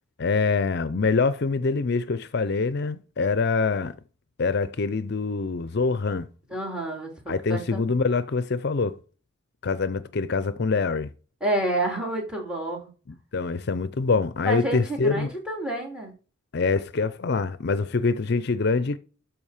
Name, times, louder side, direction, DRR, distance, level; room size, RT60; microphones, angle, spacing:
voice 1, 0.2-3.9 4.4-6.3 7.3-9.0 9.6-11.1 13.1-15.3 16.5-19.0, left 4 dB, 55° left, 0.5 m, -25 dB
voice 2, 6.5-8.0 11.4-12.9 14.4-16.1, right 1 dB, 5° right, 3.0 m, -29 dB
13.0 x 4.9 x 4.9 m
head